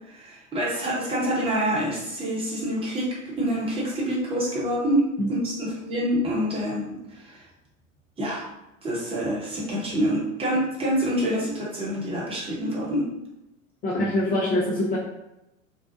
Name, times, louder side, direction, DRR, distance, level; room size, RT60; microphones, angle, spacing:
voice 1, 0.1-7.4 8.2-8.5 8.8-13.1, equal, 15° right, -5 dB, 0.9 m, -26 dB
voice 2, 13.8-15.0, left 1 dB, 20° left, -4 dB, 0.4 m, -24 dB
2.7 x 2.0 x 2.6 m, 0.90 s
figure-of-eight pair, 85°, 39 cm